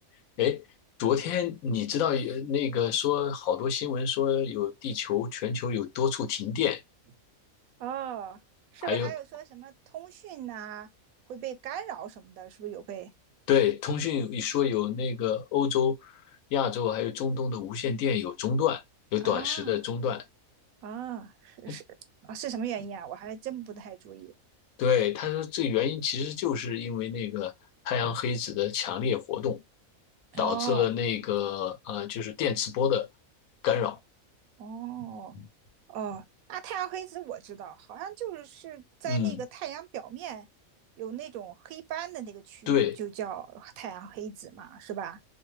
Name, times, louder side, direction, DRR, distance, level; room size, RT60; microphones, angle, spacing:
voice 1, 1.0-6.8 8.8-9.1 13.5-16.1 16.5-18.8 19.1-20.2 21.7-21.8 24.8-27.5 27.8-29.6 30.3-33.1 33.6-34.0 39.1-39.4 42.7-43.0, left 8 dB, 80° left, 1.0 m, -28 dB
voice 2, 7.8-8.4 8.7-10.9 11.3-13.1 19.2-19.8 20.8-21.8 22.2-24.3 30.3-30.9 34.6-35.4 35.9-40.5 41.0-45.2, right 9 dB, 85° right, 1.0 m, -38 dB
2.5 x 2.1 x 3.0 m
omnidirectional pair, 1.4 m